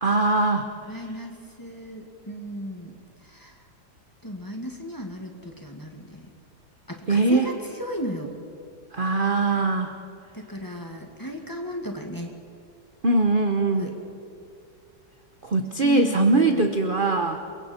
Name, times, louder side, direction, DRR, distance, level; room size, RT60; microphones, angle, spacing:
voice 1, 0.0-0.7 7.1-7.5 8.9-9.9 13.0-13.9 15.4-17.4, right 3 dB, 35° right, 5 dB, 0.9 m, -21 dB
voice 2, 0.9-2.9 3.2-3.6 4.2-6.3 6.9-7.5 7.8-8.3 10.3-12.3 13.8-14.0 15.8-16.7, equal, 10° left, 1 dB, 1.8 m, -35 dB
28.0 x 23.5 x 4.4 m, 2.3 s
omnidirectional pair, 2.0 m